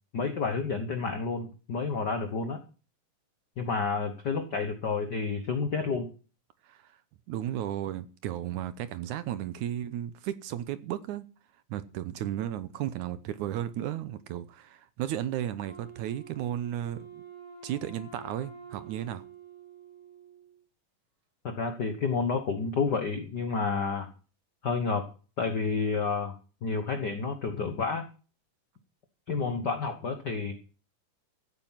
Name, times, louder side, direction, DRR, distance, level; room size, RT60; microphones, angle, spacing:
voice 1, 0.1-2.6 3.6-6.1 21.4-24.1 24.6-25.1 25.4-26.3 26.6-28.1 29.3-30.5, left 4 dB, 75° left, 0.9 m, -30 dB
voice 2, 6.6-7.0 7.3-11.3 11.7-17.2 17.6-19.2, right 11 dB, 75° right, 2.0 m, -34 dB
Wind instrument woodwind instrument, 15.7-20.6, right 5 dB, 40° right, 6.2 m, -48 dB
15.0 x 9.0 x 5.8 m
omnidirectional pair, 4.0 m